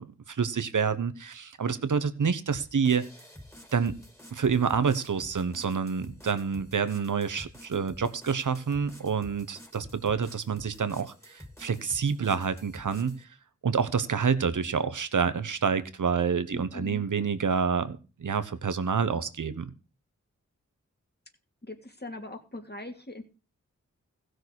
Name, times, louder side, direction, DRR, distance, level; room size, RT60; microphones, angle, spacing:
voice 1, 0.0-3.0 3.7-4.0 4.3-13.3 13.6-19.7, right 6 dB, 85° right, 12 dB, 1.2 m, -28 dB
sound 1, 2.5-13.2, left 1 dB, 10° left, 2.7 m, -49 dB
voice 2, 16.5-17.0 21.6-23.2, left 2 dB, 35° left, 5 dB, 2.8 m, -41 dB
16.0 x 6.4 x 6.4 m, 0.33 s
wide cardioid pair, 55°, 30 cm